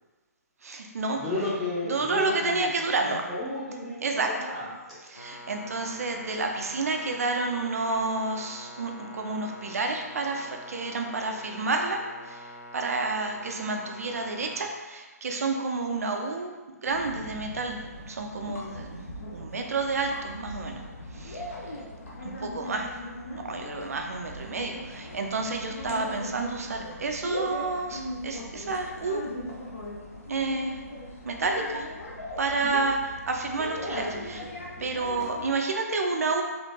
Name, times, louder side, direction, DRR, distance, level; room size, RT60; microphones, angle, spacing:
voice 1, 0.6-1.2 1.9-3.2 4.0-4.3 5.1-16.5 16.8-19.0 19.3-20.8 21.1-21.5 22.2-22.9 23.5-29.2 30.3-30.8 31.2-31.9 32.4-34.4 34.8-36.4, right 3 dB, 60° right, 3 dB, 0.5 m, -30 dB
voice 2, 1.2-5.0, left 2 dB, ahead, -13 dB, 0.7 m, -33 dB
sound 1, 5.2-14.6, equal, 85° left, 0.4 m, -45 dB
sound 2, 16.9-35.5, left 1 dB, 60° left, 0.8 m, -39 dB
3.9 x 2.5 x 2.2 m, 1.2 s
figure-of-eight pair, 130°, 9 cm